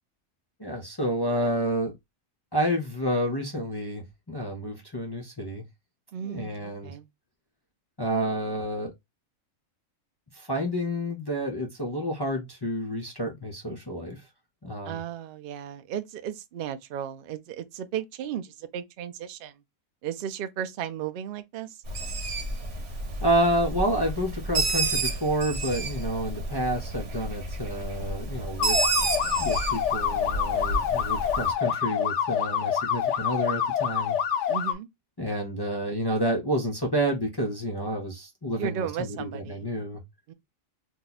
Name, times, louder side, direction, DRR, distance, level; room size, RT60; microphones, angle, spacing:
voice 1, 0.6-1.9 2.5-5.6 6.2-6.9 8.0-8.9 10.3-14.2 14.6-15.0 23.2-34.2 35.2-40.0, equal, 40° left, 0.3 m, -29 dB
voice 2, 6.1-7.1 14.8-19.6 20.0-21.8 34.5-34.9 38.6-39.7 40.3-40.4, right 9 dB, 70° right, 0.5 m, -35 dB
Bird, 21.9-31.5, right 3 dB, 55° right, 1.1 m, -30 dB
sound 1, 28.6-34.7, left 8 dB, 65° left, 0.8 m, -27 dB
2.7 x 2.3 x 3.9 m
omnidirectional pair, 1.4 m